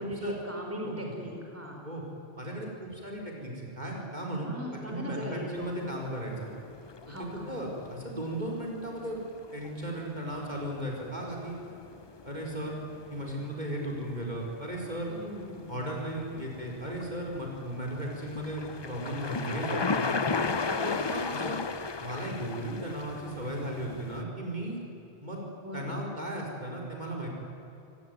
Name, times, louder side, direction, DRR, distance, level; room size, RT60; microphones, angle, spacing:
voice 1, 0.0-1.8 4.4-5.9 7.1-7.5 15.1-15.8 20.1-20.9 25.6-26.0, equal, 10° right, 0 dB, 4.4 m, -38 dB
voice 2, 2.4-6.5 7.1-7.2 7.5-9.2 9.5-11.5 12.2-12.7 13.1-15.1 15.7-20.1 20.8-21.6 22.0-24.8 25.2-25.4 25.7-27.3, right 1 dB, 40° right, -1 dB, 4.7 m, -36 dB
sound 1, 5.6-24.2, left 4 dB, 30° left, 0.6 m, -37 dB
28.5 x 18.0 x 9.5 m, 3.0 s
omnidirectional pair, 1.1 m